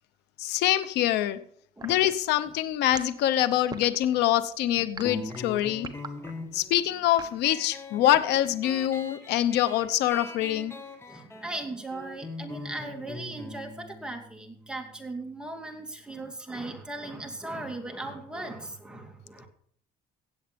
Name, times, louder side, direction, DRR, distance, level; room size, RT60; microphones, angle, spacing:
voice 1, 0.4-1.4 1.8-5.9 6.5-10.7, left 12 dB, 85° left, 14 dB, 0.9 m, -25 dB
voice 2, 1.8-2.1 6.3-6.5 11.1-19.5, right 2 dB, 5° right, 2 dB, 2.5 m, -38 dB
sound 1, 1.8-7.4, right 4 dB, 25° right, 1.1 m, -41 dB
sound 2, 5.0-16.2, left 2 dB, 15° left, 2.2 m, -43 dB
16.5 x 8.0 x 5.2 m, 0.62 s
cardioid pair, 110°, 17 cm